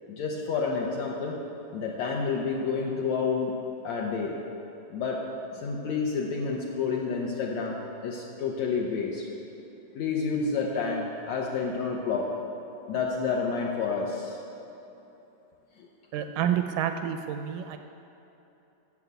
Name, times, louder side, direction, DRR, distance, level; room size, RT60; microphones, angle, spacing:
voice 1, 0.1-1.4 1.7-3.5 3.8-4.4 4.9-5.2 5.5-9.3 9.9-12.3 12.9-14.4 15.8-15.9, left 5 dB, 70° left, -2 dB, 1.8 m, -29 dB
voice 2, 16.1-17.8, right 9 dB, 80° right, 7 dB, 2.0 m, -29 dB
11.0 x 7.2 x 8.0 m, 2.9 s
omnidirectional pair, 3.9 m